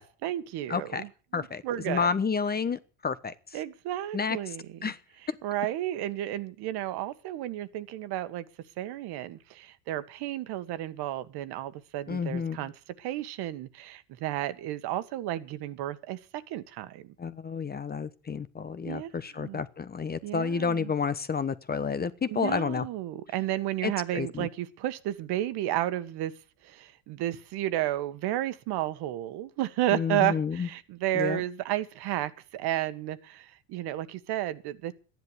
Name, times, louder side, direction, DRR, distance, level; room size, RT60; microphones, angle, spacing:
voice 1, 0.0-2.1 3.5-4.9 5.4-8.4 8.8-12.7 13.0-17.1 18.8-19.6 20.2-20.9 22.3-26.3 26.6-34.9, right 14 dB, 60° right, 1.7 m, -32 dB
voice 2, 0.7-1.0 1.3-3.3 4.1-4.4 4.8-5.0 12.1-12.6 17.2-22.8 23.8-24.5 29.9-30.7 31.1-31.4, left 5 dB, 20° left, 1.1 m, -30 dB
13.5 x 10.5 x 8.1 m
supercardioid pair, 100°, 44 cm